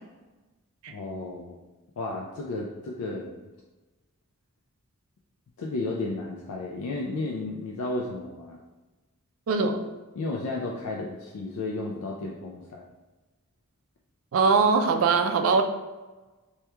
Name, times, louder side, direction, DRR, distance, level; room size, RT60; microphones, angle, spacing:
voice 1, 0.9-1.6 2.0-3.4 5.6-8.6 10.2-12.8, left 2 dB, 85° left, -1 dB, 0.4 m, -33 dB
voice 2, 9.5-9.8 14.3-15.6, right 4 dB, 65° right, 6 dB, 0.3 m, -21 dB
2.9 x 2.3 x 3.3 m, 1.2 s
head